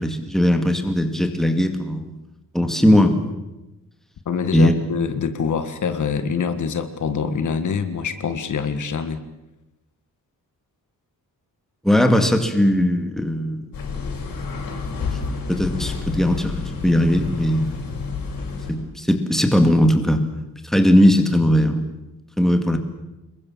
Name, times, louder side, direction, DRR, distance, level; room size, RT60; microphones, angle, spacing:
voice 1, 0.0-2.1 2.5-3.3 4.5-4.7 11.8-13.6 15.2-17.8 18.7-20.2 20.6-21.9 22.4-22.8, equal, ahead, 5 dB, 2.2 m, -18 dB
voice 2, 4.3-9.2, left 6 dB, 60° left, 10 dB, 1.7 m, -25 dB
sound 1, 13.7-18.7, left 4 dB, 80° left, 6.7 m, -29 dB
26.5 x 22.5 x 7.4 m, 0.98 s
wide cardioid pair, 175°, 34 cm